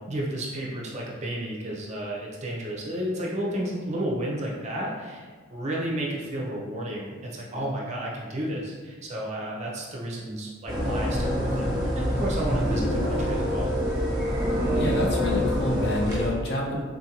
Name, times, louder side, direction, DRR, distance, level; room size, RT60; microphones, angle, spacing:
voice 1, 0.1-11.7 11.9-13.7, right 1 dB, 35° right, -3 dB, 0.5 m, -32 dB
sound 1, 10.7-16.3, equal, 15° right, 1.0 m, -26 dB
voice 2, 14.7-16.8, left 1 dB, 50° left, -2 dB, 0.6 m, -28 dB
3.7 x 2.5 x 2.9 m, 1.5 s
head